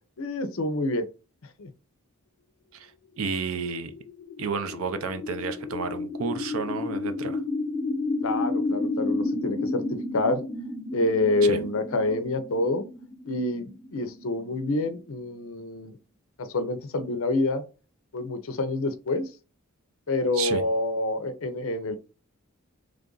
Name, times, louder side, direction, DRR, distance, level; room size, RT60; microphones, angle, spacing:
voice 1, 0.2-1.1 1.6-1.7 8.2-10.4 10.9-12.8 13.3-16.0 16.4-17.6 18.1-19.3 20.1-22.0, left 2 dB, 65° left, 0.6 m, -27 dB
voice 2, 3.2-3.9 4.4-7.4 11.5-11.6 20.3-20.6, right 5 dB, 70° right, 0.5 m, -31 dB
sound 1, 3.8-15.5, left 2 dB, 30° right, 2.2 m, -32 dB
3.3 x 2.5 x 3.8 m
head